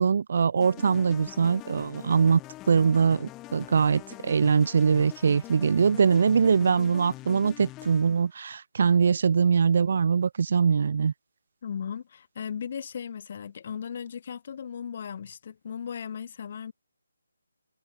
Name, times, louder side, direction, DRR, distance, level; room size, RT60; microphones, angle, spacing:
voice 1, 0.0-2.4 2.7-11.1, right 6 dB, 45° right, 0.4 m, -22 dB
sound 1, 0.6-8.2, left 18 dB, 15° left, 4.3 m, -44 dB
voice 2, 11.6-16.7, left 7 dB, 35° left, 0.9 m, -37 dB
figure-of-eight pair, 150°, 0 cm